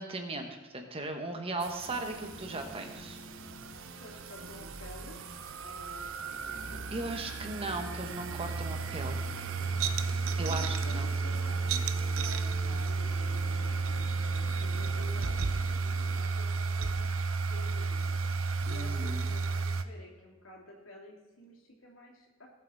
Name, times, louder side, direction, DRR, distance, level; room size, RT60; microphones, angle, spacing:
voice 1, 0.0-3.2 6.9-9.2 10.4-11.0 18.6-19.3, right 2 dB, 30° right, 4 dB, 1.4 m, -37 dB
sound 1, 1.6-19.8, right 4 dB, 85° right, 0.7 m, -33 dB
sound 2, 1.9-15.4, left 1 dB, 15° left, 1.4 m, -51 dB
voice 2, 4.0-5.2 5.6-6.9 10.2-22.5, left 1 dB, 90° left, -2 dB, 2.8 m, -51 dB
sound 3, 6.3-16.2, left 1 dB, 55° left, 2.7 m, -51 dB
19.0 x 8.1 x 4.2 m, 1.1 s
head